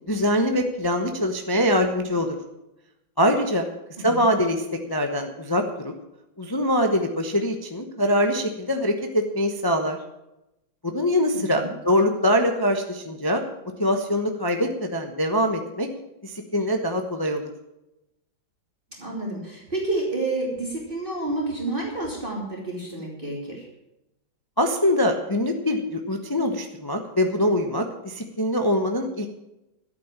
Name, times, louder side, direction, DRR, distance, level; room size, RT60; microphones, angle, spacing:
voice 1, 0.1-2.3 3.2-3.7 4.0-4.6 4.9-5.9 6.4-10.0 10.8-13.4 13.8-15.9 16.2-17.5 24.6-29.3, equal, 15° left, 4 dB, 0.8 m, -23 dB
voice 2, 4.0-4.3 11.3-11.7 18.9-23.7, right 2 dB, 25° right, -3 dB, 2.9 m, -29 dB
12.5 x 9.0 x 7.4 m, 0.91 s
omnidirectional pair, 2.1 m